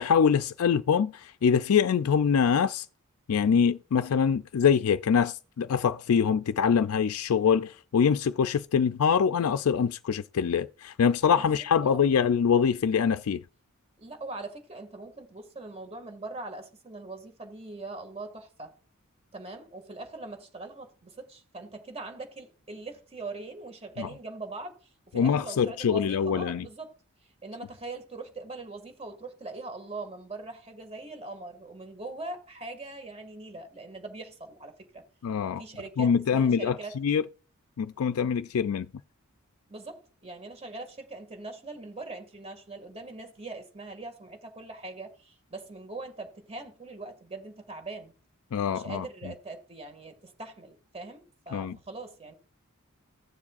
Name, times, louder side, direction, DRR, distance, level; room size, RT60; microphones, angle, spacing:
voice 1, 0.0-2.9 3.3-13.4 24.0-24.1 25.1-26.7 35.2-35.6 36.0-37.2 37.8-38.9 48.5-49.0 51.5-51.8, left 7 dB, 85° left, 0.4 m, -24 dB
voice 2, 14.0-18.7 19.3-26.9 27.4-35.0 35.6-37.0 39.7-48.1 48.7-52.3, right 2 dB, 30° right, 2.0 m, -41 dB
16.0 x 7.2 x 2.5 m
head